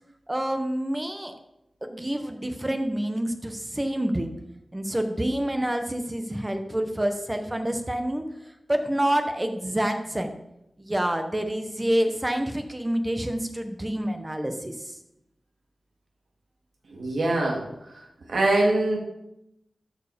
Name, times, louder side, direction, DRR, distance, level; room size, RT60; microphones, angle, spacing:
voice 1, 0.3-1.3 1.8-4.3 4.7-8.2 8.7-10.3 10.8-15.0, right 1 dB, 20° right, 6 dB, 1.1 m, -27 dB
voice 2, 16.9-18.0 18.3-19.0, right 2 dB, 80° right, -1 dB, 2.7 m, -24 dB
13.5 x 4.8 x 5.1 m, 0.85 s
wide cardioid pair, 70°, 0 cm